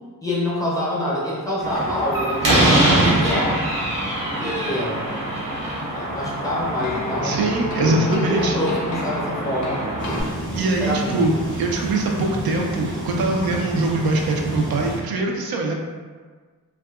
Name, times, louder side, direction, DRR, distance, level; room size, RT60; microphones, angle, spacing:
voice 1, 0.2-2.9 3.1-3.6 4.2-5.0 5.9-7.4 7.7-9.8 10.8-11.4, left 1 dB, 10° left, -7 dB, 0.5 m, -26 dB
Slam, 1.6-10.2, right 1 dB, 65° right, 0.9 m, -23 dB
sound 1, 6.8-10.9, equal, 55° left, 0.4 m, -33 dB
voice 2, 7.2-8.6 10.6-11.3 11.6-15.7, right 2 dB, 85° right, 1 dB, 0.5 m, -22 dB
sound 2, 10.0-15.0, right 1 dB, 35° right, 0.6 m, -30 dB
2.6 x 2.3 x 2.3 m, 1.5 s
wide cardioid pair, 115°, 36 cm